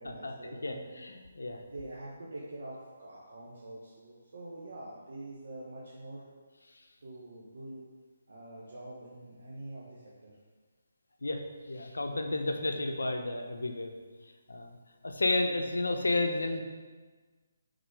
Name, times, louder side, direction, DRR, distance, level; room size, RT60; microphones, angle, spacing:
voice 1, 0.0-0.9 1.6-6.2 7.0-7.8 8.3-10.3, right 1 dB, 70° right, -5 dB, 1.1 m, -45 dB
voice 2, 0.6-1.6 11.2-11.4 11.7-13.9 14.5-14.8 15.0-16.6, left 2 dB, 85° left, 5 dB, 0.7 m, -31 dB
5.0 x 4.0 x 4.8 m, 1.4 s
figure-of-eight pair, 150°, 0 cm